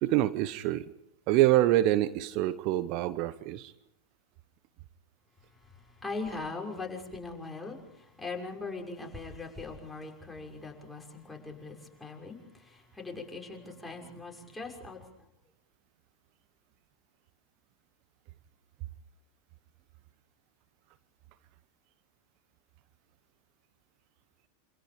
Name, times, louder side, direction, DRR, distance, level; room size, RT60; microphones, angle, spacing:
voice 1, 0.0-0.9 1.3-3.7, right 14 dB, 50° right, 14 dB, 1.0 m, -26 dB
voice 2, 5.4-15.3, left 3 dB, 10° left, 0 dB, 6.1 m, -41 dB
27.5 x 27.0 x 5.2 m, 0.75 s
figure-of-eight pair, 90°, 0 cm